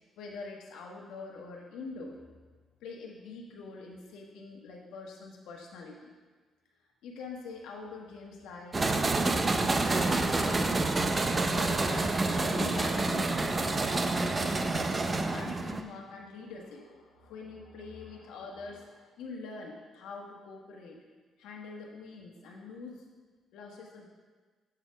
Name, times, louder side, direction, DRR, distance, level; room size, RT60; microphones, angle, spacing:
voice 1, 0.2-2.2 2.8-6.1 7.0-13.4 13.9-14.8 15.3-21.0 21.4-23.1 23.5-24.1, left 4 dB, 90° left, 0 dB, 1.2 m, -44 dB
sound 1, 8.7-15.8, right 2 dB, 30° right, 0.5 m, -28 dB
7.8 x 4.3 x 5.1 m, 1.4 s
cardioid pair, 90°, 0 cm